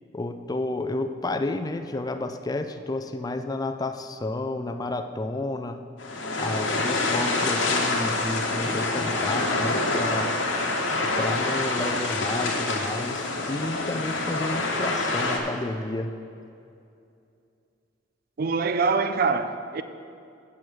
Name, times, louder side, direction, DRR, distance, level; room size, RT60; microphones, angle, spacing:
voice 1, 0.1-5.8 6.4-10.3 11.2-16.1, left 2 dB, 20° left, 0.4 m, -31 dB
sound 1, 6.0-15.4, left 2 dB, 75° left, 1.2 m, -26 dB
voice 2, 18.4-19.8, right 4 dB, 50° right, 0.5 m, -24 dB
8.6 x 6.3 x 6.0 m
head